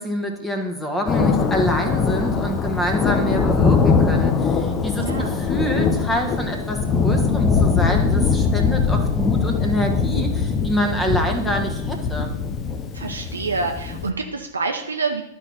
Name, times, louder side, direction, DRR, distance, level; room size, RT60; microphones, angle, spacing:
voice 1, 0.0-12.3, equal, 10° left, 4 dB, 1.3 m, -26 dB
Thunder, 1.1-14.1, left 5 dB, 25° left, 0.7 m, -21 dB
voice 2, 5.0-5.4 12.9-15.2, right 4 dB, 85° right, 3 dB, 0.6 m, -27 dB
11.5 x 4.7 x 4.1 m, 0.87 s
figure-of-eight pair, 100°, 0 cm